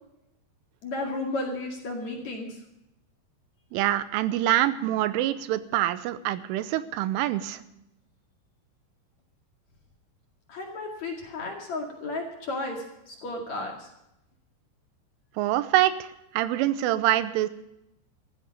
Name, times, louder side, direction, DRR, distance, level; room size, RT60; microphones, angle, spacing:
voice 1, 0.8-2.6 10.5-13.9, left 2 dB, 45° left, 1 dB, 2.7 m, -33 dB
voice 2, 3.7-7.6 15.4-17.5, right 14 dB, 85° right, 13 dB, 3.3 m, -25 dB
14.0 x 14.0 x 5.3 m, 0.85 s
omnidirectional pair, 5.5 m